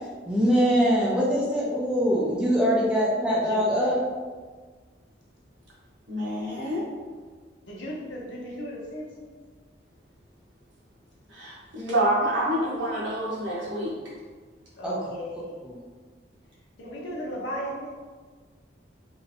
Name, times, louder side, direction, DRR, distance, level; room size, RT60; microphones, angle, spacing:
voice 1, 0.3-4.0 14.8-15.0 15.4-15.8, equal, 5° right, -6 dB, 0.6 m, -23 dB
voice 2, 3.3-3.8 7.6-9.3 14.8-15.5 16.8-18.0, equal, 85° left, -3 dB, 0.8 m, -36 dB
voice 3, 6.1-6.8 11.3-13.9, right 1 dB, 90° right, -6 dB, 1.1 m, -27 dB
3.1 x 2.8 x 2.7 m, 1.5 s
head